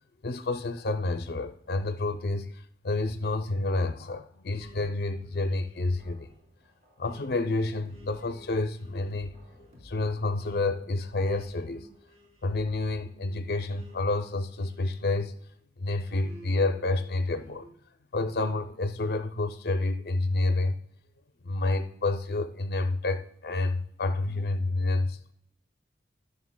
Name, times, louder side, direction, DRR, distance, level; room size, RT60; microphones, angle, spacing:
voice 1, 0.2-6.3 7.0-9.3 9.8-11.9 12.4-15.4 15.8-17.7 18.1-20.8 21.4-25.3, left 2 dB, 55° left, 0.5 m, -29 dB
sound 1, 4.5-15.6 16.2-17.8, equal, 40° right, 3.3 m, -53 dB
18.5 x 6.6 x 2.2 m
head